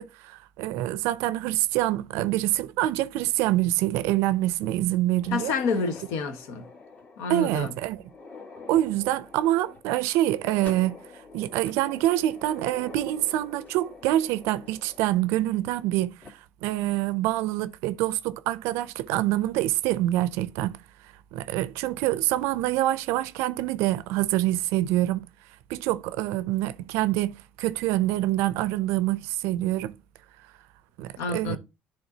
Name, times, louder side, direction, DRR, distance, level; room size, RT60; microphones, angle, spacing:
voice 1, 0.0-5.5 7.3-8.0 8.7-11.0 11.3-16.2 16.6-20.8 21.3-25.3 25.7-30.0 31.0-31.6, right 15 dB, 85° right, 0.4 m, -26 dB
sound 1, 5.1-15.9 16.2-16.3 17.1-17.2 17.7-17.8 19.1-19.4, left 3 dB, 40° left, 2.4 m, -47 dB
voice 2, 5.3-6.7 7.2-7.7 31.2-31.6, left 4 dB, 85° left, 1.3 m, -29 dB
10.5 x 3.6 x 2.8 m
cardioid pair, 95°, 4 cm